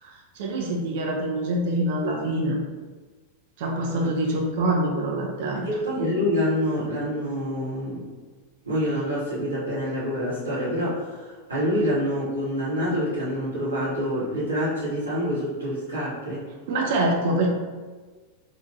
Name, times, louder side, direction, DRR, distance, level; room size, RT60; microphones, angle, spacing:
voice 1, 0.0-2.6 3.6-5.7 16.7-17.5, right 1 dB, 50° right, 0 dB, 0.7 m, -25 dB
voice 2, 5.5-8.0 8.6-16.5, equal, 75° right, -9 dB, 1.2 m, -26 dB
4.4 x 2.4 x 2.9 m, 1.4 s
figure-of-eight pair, 90°, 0 cm